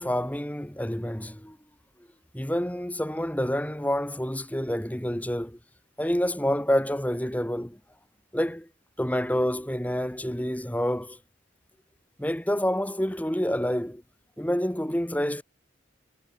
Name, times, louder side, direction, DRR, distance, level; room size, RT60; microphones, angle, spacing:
voice 1, 0.0-1.6 2.3-5.6 6.0-7.8 8.3-8.7 9.0-11.2 12.2-14.0 14.4-15.4, equal, 10° left, 1.4 m, -28 dB
head